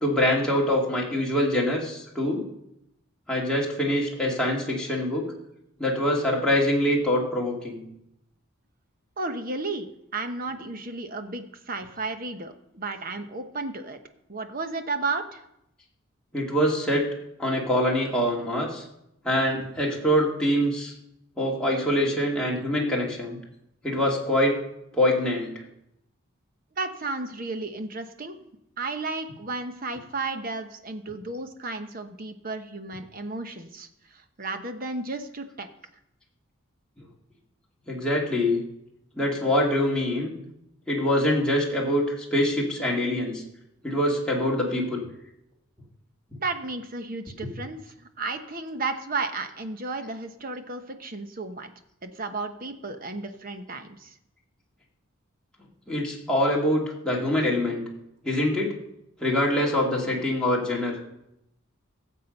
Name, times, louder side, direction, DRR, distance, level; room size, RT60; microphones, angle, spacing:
voice 1, 0.0-2.4 3.3-5.2 5.8-7.8 16.3-17.1 17.4-18.8 19.2-20.9 21.4-23.4 23.8-24.6 24.9-25.5 37.9-38.6 39.2-40.3 40.9-43.4 43.8-45.0 55.9-57.8 58.2-58.7 59.2-61.0, left 1 dB, 5° left, -4 dB, 2.5 m, -24 dB
voice 2, 9.2-14.0 14.3-15.4 26.8-28.4 28.8-35.7 46.4-51.7 52.0-54.2, right 3 dB, 45° right, 7 dB, 1.0 m, -33 dB
16.5 x 7.5 x 5.4 m, 0.82 s
head